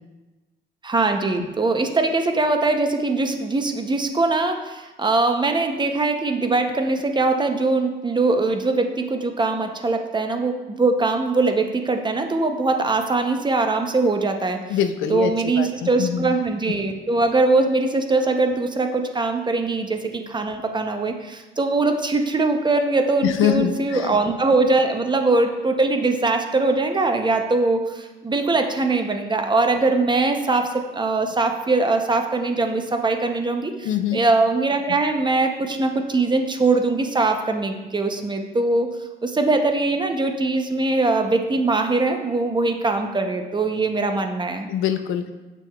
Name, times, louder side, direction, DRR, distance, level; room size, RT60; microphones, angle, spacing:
voice 1, 0.8-14.8 15.1-38.9 39.2-44.7, right 3 dB, 25° right, 5 dB, 0.6 m, -22 dB
voice 2, 14.7-15.3 15.6-16.3 23.2-24.2 33.8-34.2 44.7-45.3, left 9 dB, 90° left, 8 dB, 0.5 m, -23 dB
7.3 x 6.0 x 2.3 m, 1.1 s
cardioid pair, 90°, 20 cm